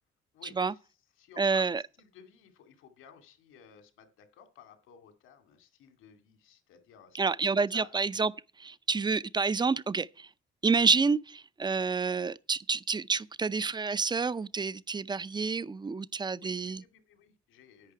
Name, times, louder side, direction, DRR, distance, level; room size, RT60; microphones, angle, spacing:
voice 1, 0.3-0.9 1.2-8.0 16.3-17.9, left 8 dB, 90° left, 2.3 m, -55 dB
voice 2, 1.4-1.8 7.1-8.3 8.6-10.3 10.6-16.8, right 4 dB, 20° right, 0.5 m, -28 dB
10.5 x 9.0 x 4.7 m
cardioid pair, 90°, 20 cm